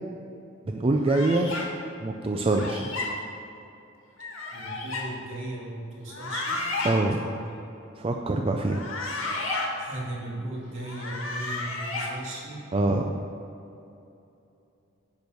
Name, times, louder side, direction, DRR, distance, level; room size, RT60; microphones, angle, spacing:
voice 1, 0.7-1.6 2.0-2.9 6.8-7.2 8.0-8.8 12.7-13.0, right 2 dB, 30° right, 3 dB, 0.4 m, -24 dB
sound 1, 1.0-1.6 2.5-3.1 4.2-5.0 6.0-6.9 8.6-9.7 10.8-12.1, left 3 dB, 85° left, 1.9 m, -32 dB
voice 2, 4.5-6.6 7.2-7.4 9.8-12.8, right 1 dB, 70° right, -4 dB, 2.4 m, -37 dB
10.5 x 4.6 x 6.5 m, 2.7 s
head